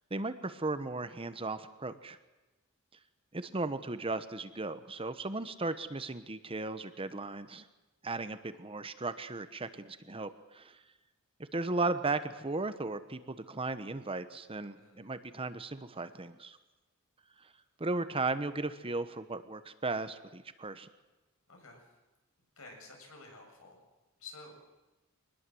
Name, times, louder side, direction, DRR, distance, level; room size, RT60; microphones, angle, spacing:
voice 1, 0.1-2.2 3.3-7.7 8.0-10.8 11.5-16.6 17.4-17.5 17.8-20.9, right 3 dB, 25° right, 11 dB, 1.0 m, -36 dB
voice 2, 14.8-15.1 21.5-21.9 22.6-23.8 24.2-24.5, left 3 dB, 75° left, 2 dB, 7.4 m, -51 dB
24.5 x 19.5 x 7.8 m, 1.1 s
head